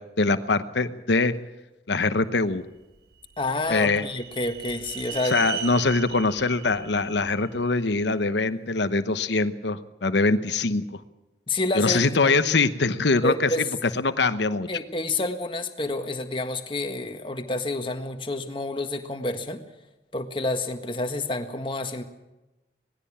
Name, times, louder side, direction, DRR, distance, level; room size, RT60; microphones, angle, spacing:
voice 1, 0.2-1.3 1.9-2.6 3.7-4.1 5.2-11.0 11.8-14.7, left 3 dB, 75° left, 12 dB, 1.0 m, -23 dB
sound 1, 2.9-8.1, right 8 dB, 60° right, 1.2 m, -38 dB
voice 2, 3.4-5.4 11.5-12.3 13.2-13.7 14.7-19.6 20.1-22.0, left 2 dB, 30° left, 7 dB, 1.6 m, -29 dB
19.5 x 16.0 x 8.6 m, 1.0 s
head